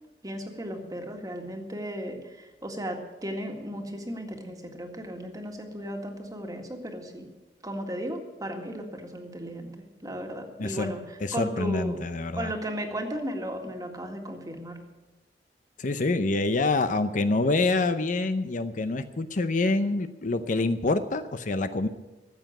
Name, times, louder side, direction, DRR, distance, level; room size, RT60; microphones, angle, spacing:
voice 1, 0.2-7.3 7.6-9.7 10.0-11.0 11.3-12.0 12.3-14.8, equal, 20° right, 3 dB, 1.8 m, -35 dB
voice 2, 10.6-10.9 11.2-12.5 15.8-21.9, left 2 dB, 45° left, 10 dB, 0.6 m, -26 dB
14.0 x 8.1 x 8.9 m, 1.1 s
head